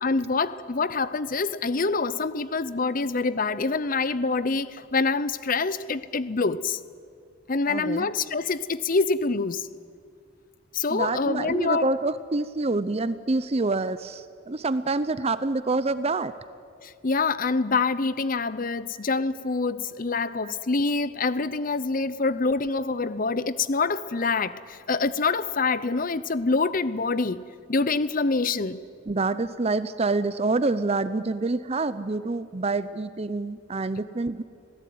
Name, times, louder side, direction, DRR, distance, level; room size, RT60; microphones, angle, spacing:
voice 1, 0.0-6.8 7.5-9.7 10.7-11.9 16.8-27.4 27.7-28.8, left 4 dB, 45° left, 0.7 m, -26 dB
voice 2, 7.7-8.1 10.9-16.3 18.9-19.0 19.9-20.0 20.4-20.5 22.7-22.8 29.1-34.4, right 3 dB, 30° right, 0.6 m, -27 dB
26.0 x 18.0 x 9.4 m
head